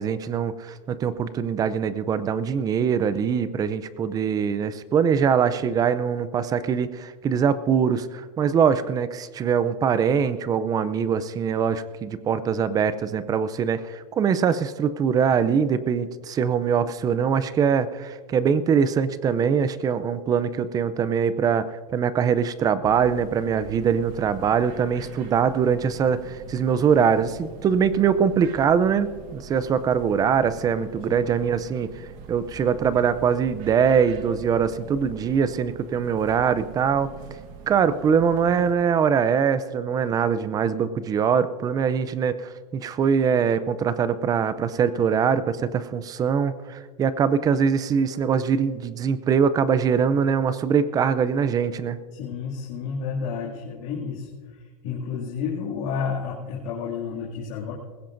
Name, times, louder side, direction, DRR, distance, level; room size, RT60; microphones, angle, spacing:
voice 1, 0.0-21.7 21.9-37.1 37.7-52.0, right 7 dB, 20° right, 15 dB, 0.5 m, -23 dB
sound 1, 22.8-38.7, right 6 dB, 45° right, 1.5 m, -43 dB
voice 2, 52.1-57.7, left 6 dB, 50° left, -6 dB, 2.4 m, -31 dB
20.5 x 16.0 x 2.6 m, 1.5 s
supercardioid pair, 145°, 20 cm